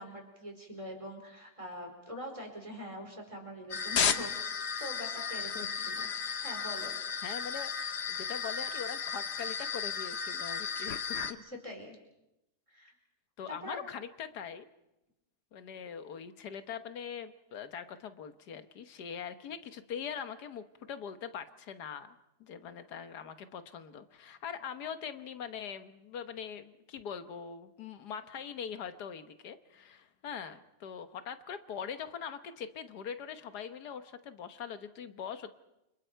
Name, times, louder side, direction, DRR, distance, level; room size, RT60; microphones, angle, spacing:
voice 1, 0.0-4.3 4.7-7.0 11.4-12.0 12.7-12.9 13.5-13.8, equal, 20° right, 2 dB, 4.5 m, -44 dB
sound 1, 3.7-11.3, left 6 dB, 45° left, 1.1 m, -34 dB
voice 2, 5.5-5.9 7.2-11.0 13.4-14.7 15.5-35.5, left 7 dB, 90° left, 10 dB, 1.7 m, -42 dB
29.5 x 26.5 x 4.6 m, 0.91 s
omnidirectional pair, 1.7 m